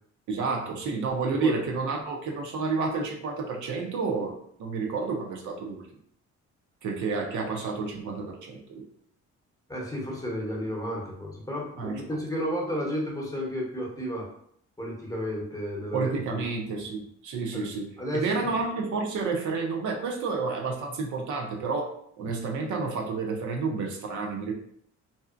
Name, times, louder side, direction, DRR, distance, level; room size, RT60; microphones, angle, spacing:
voice 1, 0.3-5.9 6.8-8.8 11.8-12.0 15.9-24.5, right 4 dB, 75° right, 1 dB, 0.6 m, -30 dB
voice 2, 9.7-14.2 14.8-16.4 17.5-17.7 18.0-18.4, equal, 10° left, -3 dB, 0.8 m, -32 dB
2.6 x 2.1 x 2.4 m, 0.67 s
cardioid pair, 90°, 30 cm